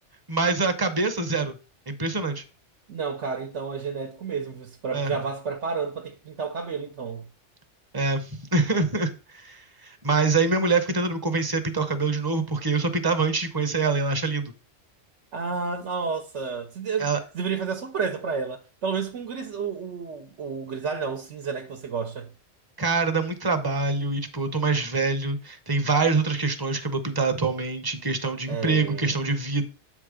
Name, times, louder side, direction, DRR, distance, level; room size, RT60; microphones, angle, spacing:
voice 1, 0.3-1.5 1.9-2.4 4.9-5.1 7.9-9.1 9.4-14.5 17.0-17.2 22.8-29.7, right 3 dB, 25° right, 0.7 m, -25 dB
voice 2, 2.9-7.3 15.3-17.1 17.3-22.3 28.5-29.2, right 5 dB, 80° right, 1.2 m, -31 dB
7.7 x 3.6 x 4.9 m
omnidirectional pair, 1.2 m